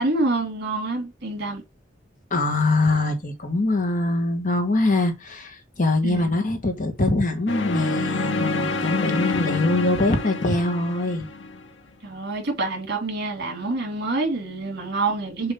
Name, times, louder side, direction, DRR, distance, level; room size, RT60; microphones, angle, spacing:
voice 1, 0.0-1.6 6.0-6.3 12.0-15.5, right 2 dB, 60° right, 2.8 m, -26 dB
voice 2, 2.3-11.3, left 2 dB, 45° left, 1.5 m, -23 dB
sound 1, 7.5-11.7, left 3 dB, 75° left, 1.0 m, -27 dB
6.9 x 3.1 x 5.4 m
head